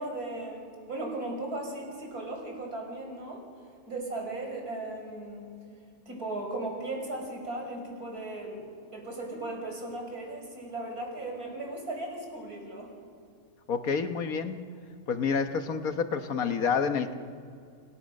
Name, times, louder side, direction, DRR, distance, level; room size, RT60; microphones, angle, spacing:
voice 1, 0.0-3.4 3.9-5.5 6.1-12.9, right 2 dB, 75° right, 1 dB, 6.4 m, -37 dB
voice 2, 13.7-14.6 15.1-17.1, left 5 dB, 70° left, 8 dB, 1.6 m, -28 dB
28.5 x 28.0 x 6.5 m, 2.4 s
omnidirectional pair, 1.6 m